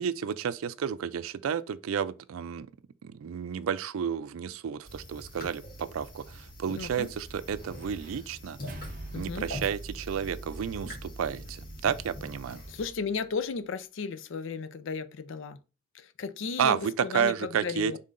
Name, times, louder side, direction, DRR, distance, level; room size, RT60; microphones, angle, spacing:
voice 1, 0.0-2.7 3.0-8.6 9.1-12.6 16.6-18.0, right 7 dB, 85° right, 0.4 m, -31 dB
sound 1, 4.8-12.9, left 1 dB, 45° left, 1.6 m, -44 dB
voice 2, 6.8-7.1 9.1-9.5 12.7-15.6 15.9-18.0, left 5 dB, 70° left, 0.4 m, -34 dB
sound 2, 8.7-13.2, right 2 dB, 45° right, 0.7 m, -44 dB
5.5 x 3.7 x 2.5 m
head